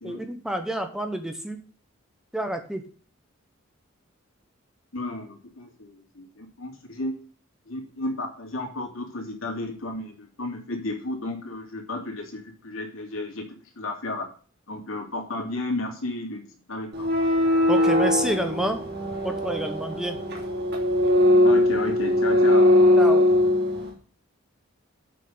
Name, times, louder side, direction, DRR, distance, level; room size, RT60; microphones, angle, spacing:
voice 1, 0.0-1.6 2.3-2.8 17.7-18.8 19.2-20.2 23.0-23.3, right 1 dB, 5° right, 6 dB, 1.0 m, -28 dB
voice 2, 4.9-7.1 7.7-13.5 13.8-14.3 14.7-16.4 16.7-17.1 21.4-22.9, left 2 dB, 75° left, 2 dB, 2.9 m, -33 dB
sound 1, 16.9-23.9, left 1 dB, 50° right, 2.9 m, -20 dB
7.6 x 6.4 x 7.8 m, 0.40 s
head